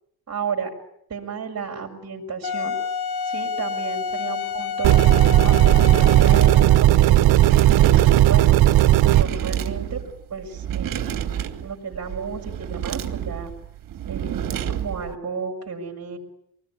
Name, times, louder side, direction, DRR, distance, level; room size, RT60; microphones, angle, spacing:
voice 1, 0.3-0.7 1.1-2.8 3.2-5.0 5.4-7.3 7.7-8.6 9.1-10.0 10.3-11.2 11.6-13.5 14.1-16.2, right 5 dB, 40° right, 1 dB, 5.7 m, -32 dB
Wind instrument woodwind instrument, 2.4-6.9, left 6 dB, 75° left, 1.8 m, -29 dB
sound 1, 4.8-9.2, right 14 dB, 80° right, 1.2 m, -15 dB
sound 2, 5.5-15.1, right 10 dB, 60° right, 2.6 m, -29 dB
26.0 x 19.5 x 9.6 m, 0.72 s
cardioid pair, 110°, 37 cm